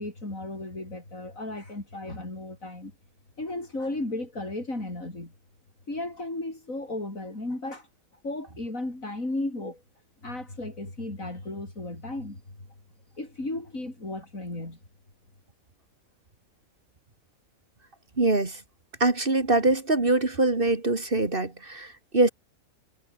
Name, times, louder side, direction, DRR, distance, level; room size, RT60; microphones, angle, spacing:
voice 1, 0.0-2.9 3.4-5.3 5.9-7.9 8.2-9.8 10.2-12.4 13.2-14.8, left 2 dB, 70° left, 6.8 m, -34 dB
voice 2, 18.2-18.6 19.0-22.3, right 2 dB, 40° right, 2.6 m, -23 dB
omnidirectional pair, 1.5 m